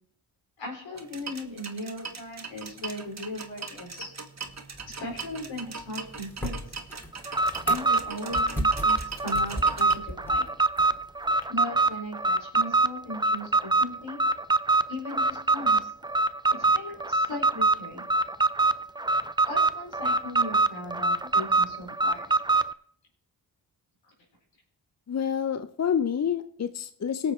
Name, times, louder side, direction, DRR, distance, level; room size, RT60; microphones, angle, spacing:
voice 1, 0.6-4.1 4.9-6.7 7.6-10.4 11.5-14.2 14.9-15.9 16.5-18.0 19.5-22.2, left 1 dB, 80° left, 0 dB, 4.4 m, -38 dB
sound 1, 0.9-9.9, right 4 dB, 35° right, 1.6 m, -40 dB
sound 2, 4.4-11.4, right 1 dB, 5° left, 2.6 m, -39 dB
Alarm, 7.3-22.7, right 2 dB, 10° right, 0.5 m, -24 dB
voice 2, 25.1-27.3, left 8 dB, 35° left, 11 dB, 0.7 m, -28 dB
18.0 x 6.9 x 4.4 m, 0.63 s
supercardioid pair, 45°, 44 cm